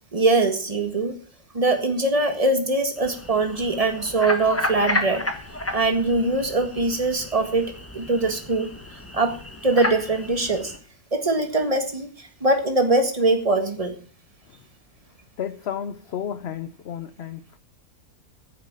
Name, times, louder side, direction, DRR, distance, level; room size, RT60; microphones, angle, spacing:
voice 1, 0.1-1.2 1.5-5.2 5.7-8.7 9.1-9.4 9.6-10.7 11.1-13.9, right 2 dB, 20° right, 6 dB, 1.7 m, -22 dB
sound 1, 3.0-10.8, left 1 dB, 10° left, 1.2 m, -32 dB
voice 2, 15.4-17.6, left 9 dB, 55° left, 12 dB, 0.8 m, -32 dB
9.7 x 7.3 x 8.9 m, 0.43 s
omnidirectional pair, 1.7 m